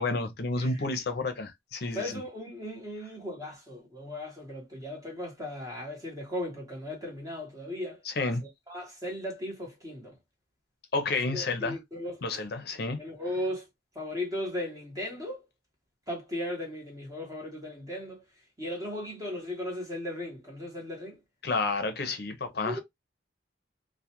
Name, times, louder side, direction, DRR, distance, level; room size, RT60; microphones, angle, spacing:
voice 1, 0.0-2.1 8.1-8.4 10.9-11.8 12.2-13.0 21.4-22.8, left 3 dB, 50° left, 0.5 m, -30 dB
voice 2, 1.9-8.0 8.4-10.1 11.1-12.2 13.0-13.7 13.9-15.4 16.1-18.2 18.6-21.2 22.7-22.8, left 1 dB, 20° right, 0.9 m, -37 dB
2.3 x 2.1 x 2.8 m
head